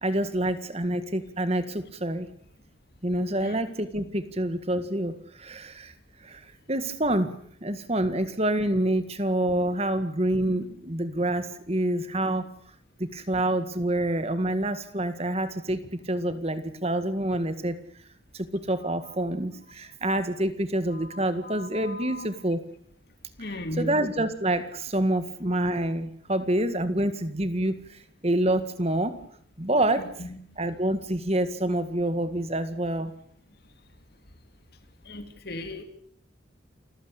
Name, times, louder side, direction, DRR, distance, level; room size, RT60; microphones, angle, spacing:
voice 1, 0.0-2.3 3.0-5.9 6.2-7.3 7.6-12.5 13.0-17.8 18.3-22.6 23.4-29.2 29.6-30.1 30.6-33.1, right 1 dB, 30° right, 11 dB, 1.9 m, -27 dB
voice 2, 20.9-22.3 23.4-23.9 30.0-30.4 35.1-35.8, left 1 dB, 55° left, 9 dB, 2.7 m, -37 dB
28.5 x 15.0 x 8.4 m, 0.62 s
head